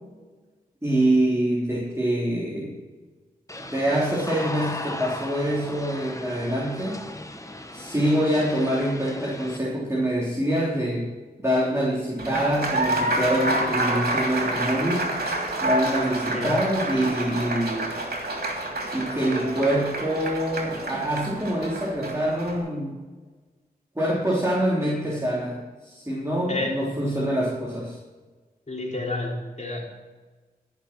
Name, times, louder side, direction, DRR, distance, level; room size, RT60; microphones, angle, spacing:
voice 1, 0.8-2.8 3.7-7.0 7.7-11.1 11.4-15.1 15.6-18.0 18.9-23.0 23.9-28.0, right 1 dB, 15° right, -5 dB, 3.4 m, -25 dB
sound 1, 3.5-9.6, left 1 dB, 20° left, 1.2 m, -37 dB
Applause, 12.2-22.6, right 1 dB, 75° right, 3.1 m, -28 dB
voice 2, 26.5-26.9 28.7-29.8, left 2 dB, 45° left, -2 dB, 3.5 m, -30 dB
14.5 x 6.7 x 6.1 m, 1.3 s
cardioid pair, 45°, 16 cm